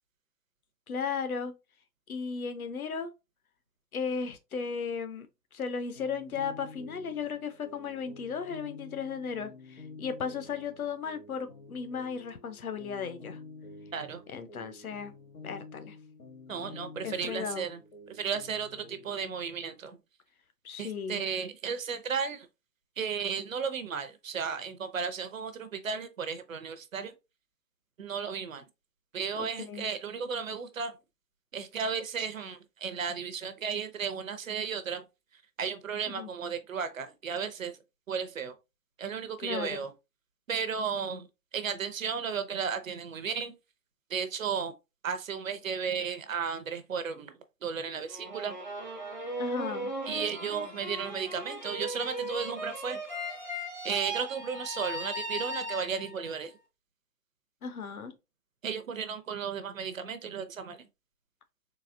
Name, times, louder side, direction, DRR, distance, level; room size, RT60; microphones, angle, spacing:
voice 1, 0.9-1.5 2.1-3.1 3.9-5.3 5.5-13.4 14.3-15.1 15.4-16.0 17.0-17.7 20.6-21.3 29.4-29.9 36.1-36.3 39.4-39.9 49.4-49.9 57.6-58.1, left 6 dB, 60° left, 0.8 m, -35 dB
sound 1, 5.9-19.3, left 2 dB, 80° left, 2.0 m, -49 dB
voice 2, 16.5-17.8 18.1-20.0 20.8-22.5 23.0-27.1 28.0-28.6 29.1-30.9 31.5-35.0 35.6-37.8 38.1-38.5 39.0-39.9 40.5-41.3 41.5-43.5 44.1-44.7 45.0-47.3 47.6-48.5 50.1-53.0 53.8-56.5 58.6-60.8, right 6 dB, 55° right, 0.6 m, -34 dB
sound 2, 48.1-56.3, right 1 dB, 30° left, 0.4 m, -37 dB
4.0 x 2.8 x 2.5 m
hypercardioid pair, 160°, 48 cm